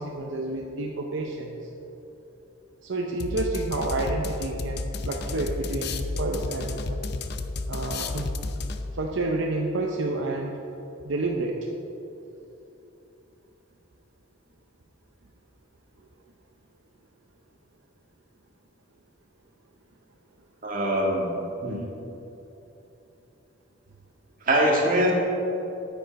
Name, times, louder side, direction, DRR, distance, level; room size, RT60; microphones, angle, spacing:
voice 1, 0.0-1.6 2.8-7.0 7.7-8.3 8.9-10.5 11.0-11.7, right 2 dB, 70° right, 1 dB, 0.7 m, -29 dB
sound 1, 3.2-9.1, left 3 dB, 55° left, 0.5 m, -32 dB
voice 2, 20.6-21.3 21.6-21.8 24.5-25.1, right 1 dB, 45° right, -2 dB, 2.0 m, -22 dB
9.3 x 8.8 x 5.2 m, 3.0 s
head